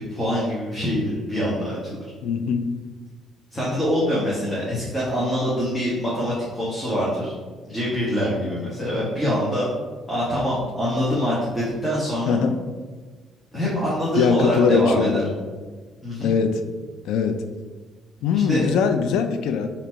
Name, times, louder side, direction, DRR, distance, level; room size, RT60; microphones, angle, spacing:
voice 1, 0.1-2.0 3.5-7.3 7.7-9.7 10.1-12.4 13.5-15.2 16.0-16.3 18.3-18.6, equal, 5° left, -8 dB, 1.3 m, -24 dB
voice 2, 2.2-2.7 12.3-12.6 14.1-15.5 16.2-16.6 17.1-17.4 18.2-19.7, left 6 dB, 85° left, 7 dB, 0.4 m, -21 dB
3.9 x 2.9 x 4.5 m, 1.4 s
cardioid pair, 105°, 0 cm